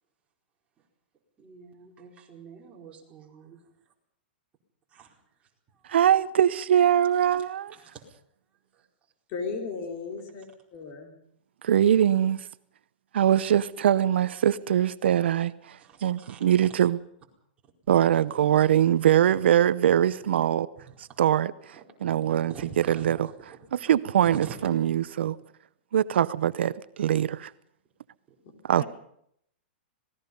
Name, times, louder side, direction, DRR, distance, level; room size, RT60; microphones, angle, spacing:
voice 1, 1.4-3.7 4.9-5.8 7.4-8.0 8.7-8.9 15.8-16.7 17.9-18.8 19.9-20.0 20.8-21.2 21.7-21.8 22.3-23.9 24.2-24.6 24.8-25.0 28.3-28.4, right 6 dB, 20° right, 4.7 m, -47 dB
voice 2, 5.9-7.7 11.7-12.4 13.1-17.0 17.9-20.7 21.2-23.5 23.9-25.4 25.9-27.5 28.7-28.8, right 10 dB, 75° right, 0.7 m, -23 dB
voice 3, 9.3-11.2 28.4-28.8, left 4 dB, 40° left, 4.6 m, -36 dB
26.5 x 19.5 x 5.4 m
hypercardioid pair, 150°, 6 cm